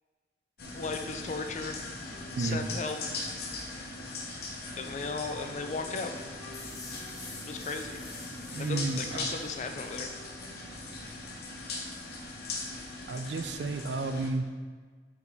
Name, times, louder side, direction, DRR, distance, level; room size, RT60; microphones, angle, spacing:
sound 1, 0.6-14.3, left 2 dB, 55° left, 0.9 m, -40 dB
voice 1, 0.7-1.8 2.4-3.0 4.8-6.1 7.4-8.0 8.6-10.1, left 4 dB, 40° left, 5 dB, 0.4 m, -36 dB
Wind instrument woodwind instrument, 2.0-10.7, left 1 dB, 55° right, 1.6 m, -55 dB
sound 2, 6.5-9.5, left 3 dB, 20° left, 0.9 m, -48 dB
voice 2, 8.5-9.2 13.1-14.5, right 3 dB, 75° right, 8 dB, 0.4 m, -31 dB
7.0 x 4.2 x 3.5 m, 1.5 s
head